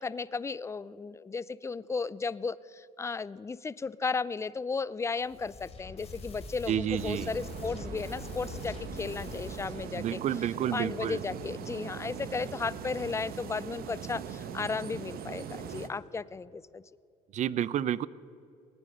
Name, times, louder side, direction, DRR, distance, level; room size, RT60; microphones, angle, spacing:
voice 1, 0.0-10.2 10.7-16.8, left 4 dB, 15° left, 19 dB, 0.3 m, -35 dB
sound 1, 5.2-10.1, left 3 dB, 40° left, 2.9 m, -44 dB
voice 2, 6.7-7.3 10.0-11.2 17.3-18.1, right 10 dB, 45° right, 20 dB, 0.4 m, -30 dB
sound 2, 6.9-15.9, right 7 dB, 60° right, 1.0 m, -41 dB
18.5 x 9.7 x 6.6 m, 2.7 s
cardioid pair, 110°, 17 cm